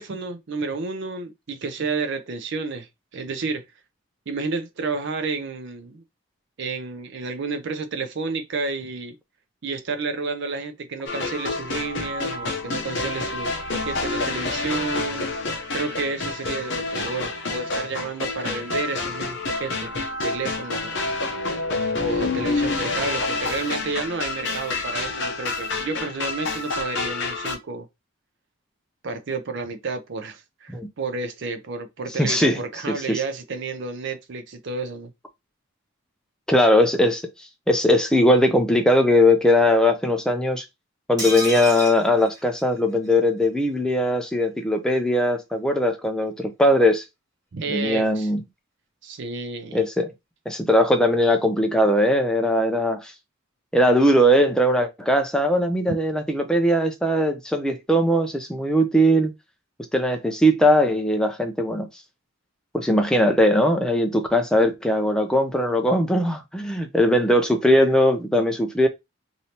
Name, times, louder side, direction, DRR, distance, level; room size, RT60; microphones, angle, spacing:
voice 1, 0.0-3.6 4.3-6.0 6.6-9.2 9.6-15.3 15.7-21.0 22.0-27.9 29.0-35.1 47.5-48.3 49.0-49.9, right 4 dB, 55° right, 0.5 m, -31 dB
sound 1, 11.1-27.6, left 3 dB, 55° left, 0.7 m, -28 dB
voice 2, 32.2-32.6 32.9-33.2 36.5-40.6 41.1-47.0 47.7-48.4 49.7-50.1 50.5-53.1 53.7-59.3 59.9-61.9 62.7-68.9, equal, 5° left, 0.4 m, -20 dB
sound 2, 41.2-43.1 43.5-43.6 43.8-43.9, equal, 15° right, 1.6 m, -31 dB
3.2 x 2.7 x 2.8 m
head